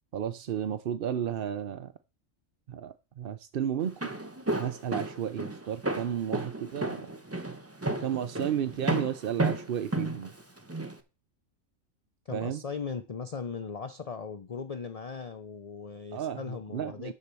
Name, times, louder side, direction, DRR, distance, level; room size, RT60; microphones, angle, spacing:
voice 1, 0.1-1.9 2.7-4.1 4.6-7.1 8.0-10.3 12.3-12.6 16.1-17.1, right 9 dB, 55° right, 0.7 m, -33 dB
Walk footsteps, 3.8-11.0, right 2 dB, 10° right, 1.0 m, -32 dB
voice 2, 12.3-17.1, left 5 dB, 35° left, 0.7 m, -38 dB
11.0 x 4.4 x 6.8 m
omnidirectional pair, 1.3 m